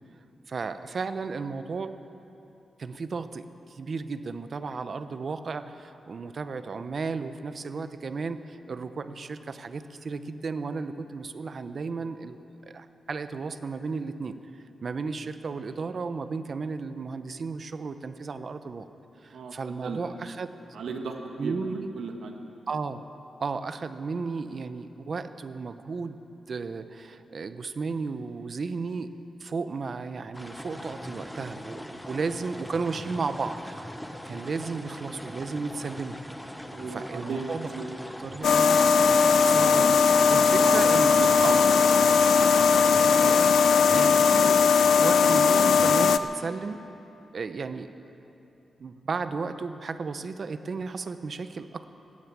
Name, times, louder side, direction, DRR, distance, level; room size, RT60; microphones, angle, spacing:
voice 1, 0.5-2.0 2.8-14.4 14.8-18.9 19.2-20.5 21.4-21.9 22.7-23.0 23.4-26.2 26.5-29.1 29.4-33.8 34.2-36.2 36.9-37.7 38.2-38.8 39.4-40.0 40.3-41.2 43.2-43.6 43.9-46.8 47.3-48.1 48.8-51.8, right 4 dB, 45° right, 11 dB, 0.7 m, -34 dB
voice 2, 20.7-22.3 36.7-38.0 40.6-40.8 41.2-42.1, right 4 dB, 80° right, 3 dB, 1.5 m, -34 dB
sound 1, 30.3-43.5, equal, 5° left, 0.7 m, -41 dB
sound 2, 38.4-46.2, left 6 dB, 75° left, 0.4 m, -19 dB
17.0 x 9.5 x 8.3 m, 2.9 s
wide cardioid pair, 155°, 0 cm